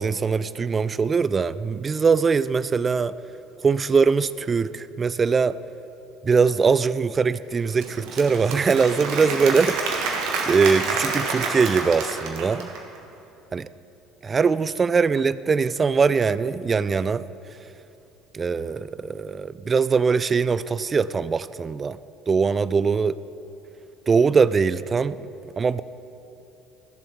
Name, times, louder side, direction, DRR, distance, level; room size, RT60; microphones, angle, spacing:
voice 1, 0.0-3.1 3.6-5.6 6.2-10.1 10.4-12.7 13.5-13.7 14.2-17.2 18.3-22.0 22.3-23.2 24.1-25.2 25.6-25.8, right 5 dB, 30° right, 17 dB, 0.3 m, -22 dB
Applause / Crowd, 7.6-13.0, right 4 dB, 60° right, 1.3 m, -28 dB
14.0 x 7.1 x 4.5 m, 2.8 s
figure-of-eight pair, 60°, 0 cm